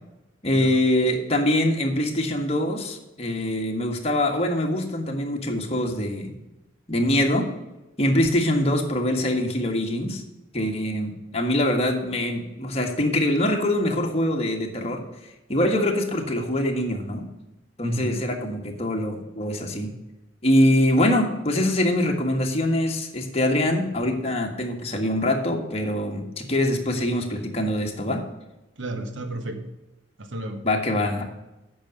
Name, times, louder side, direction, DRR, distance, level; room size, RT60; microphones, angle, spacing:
voice 1, 0.4-6.4 6.9-7.5 8.0-10.2 10.5-15.0 15.5-17.3 17.8-19.9 20.4-28.2 30.6-31.2, left 1 dB, 35° left, 2 dB, 1.5 m, -24 dB
voice 2, 17.8-18.2 28.8-29.7 30.2-30.6, right 1 dB, 80° right, 7 dB, 1.2 m, -32 dB
8.7 x 5.9 x 6.5 m, 0.99 s
head